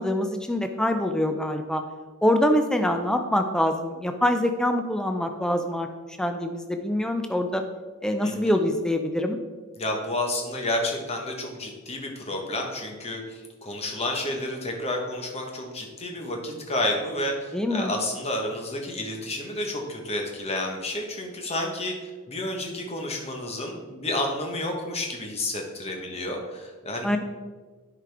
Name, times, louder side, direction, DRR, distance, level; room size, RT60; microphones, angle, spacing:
voice 1, 0.0-1.8 2.2-5.9 6.2-7.6 8.0-9.4 17.5-17.9 27.0-27.2, left 1 dB, 5° left, 5 dB, 0.4 m, -24 dB
voice 2, 9.8-21.9 22.3-27.2, left 1 dB, 30° left, 2 dB, 1.1 m, -30 dB
10.0 x 5.0 x 3.4 m, 1.4 s
head